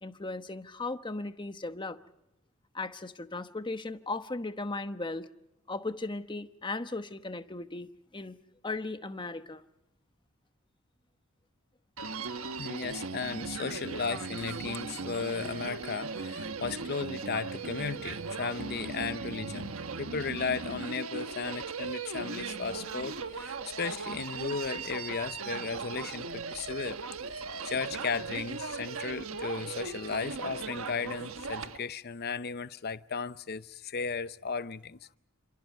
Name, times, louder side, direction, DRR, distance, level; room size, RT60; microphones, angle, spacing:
voice 1, 0.0-2.0 2.7-5.3 5.7-7.9 8.1-8.4 8.6-9.6, left 2 dB, 20° left, 1.0 m, -37 dB
Human voice, 12.0-31.8, right 4 dB, 80° right, 1.3 m, -38 dB
voice 2, 12.6-27.0 27.6-35.2, left 5 dB, 50° left, 0.8 m, -35 dB
29.5 x 26.5 x 4.7 m
head